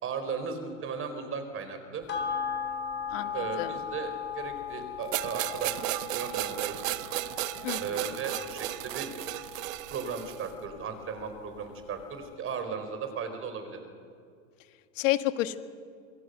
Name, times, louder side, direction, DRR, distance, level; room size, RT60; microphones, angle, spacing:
voice 1, 0.0-2.0 3.3-6.8 7.7-9.1 9.9-13.9, right 5 dB, 30° right, 8 dB, 4.4 m, -36 dB
sound 1, 2.1-10.8 11.2-11.3, left 7 dB, 30° left, 4.3 m, -38 dB
voice 2, 3.1-3.7 7.6-8.0 15.0-15.6, left 15 dB, 70° left, 10 dB, 1.8 m, -30 dB
sound 2, 5.1-10.5, right 17 dB, 75° right, 0.8 m, -34 dB
27.0 x 23.0 x 6.7 m, 2.3 s
supercardioid pair, 125°, 40 cm